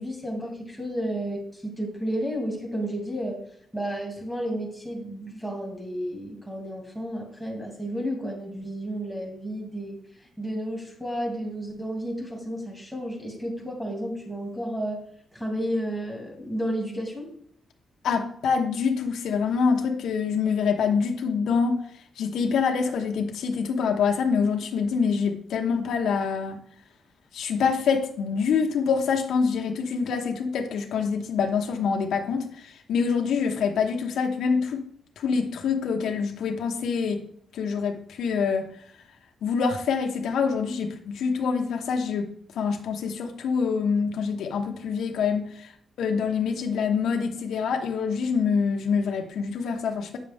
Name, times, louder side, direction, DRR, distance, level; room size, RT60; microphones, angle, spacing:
voice 1, 0.0-3.4 3.7-10.0 10.4-15.1 15.3-17.3, equal, 5° right, 2.3 m, -32 dB
voice 2, 18.0-21.8 22.2-26.6 27.3-34.8 35.2-37.2 37.5-38.7 39.4-45.7 46.0-50.2, left 5 dB, 80° left, 1.0 m, -25 dB
8.7 x 6.6 x 3.5 m
cardioid pair, 140°, 0 cm